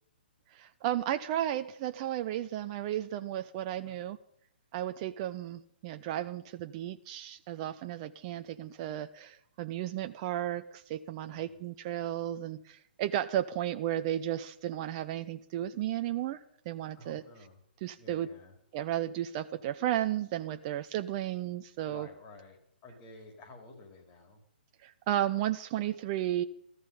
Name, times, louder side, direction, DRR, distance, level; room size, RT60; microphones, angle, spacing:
voice 1, 0.5-4.2 4.7-17.2 17.8-18.3 18.7-22.1 24.8-26.4, right 12 dB, 30° right, 10 dB, 0.6 m, -34 dB
voice 2, 11.3-11.6 17.0-17.6 18.0-18.6 21.8-24.4, left 3 dB, 30° left, 4 dB, 4.0 m, -52 dB
17.5 x 14.0 x 5.5 m, 0.71 s
figure-of-eight pair, 125°, 6 cm